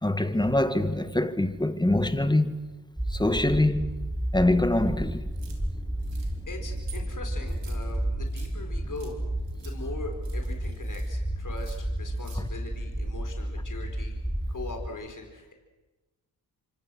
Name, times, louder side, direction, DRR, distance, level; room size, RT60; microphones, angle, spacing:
voice 1, 0.0-2.6 3.1-3.9 4.3-5.3, left 1 dB, 10° left, 1.8 m, -24 dB
sound 1, 3.0-14.9, right 1 dB, 5° right, 3.1 m, -32 dB
sound 2, 5.3-5.6 6.0-6.3 6.7-7.0 7.5-8.5 9.0-9.1 9.5-9.8 10.1-11.2 11.5-12.4, right 6 dB, 70° right, 4.1 m, -51 dB
voice 2, 6.2-9.2 9.6-14.2 14.5-15.5, left 3 dB, 45° left, 4.5 m, -41 dB
25.5 x 25.5 x 6.3 m
cardioid pair, 60°, 45 cm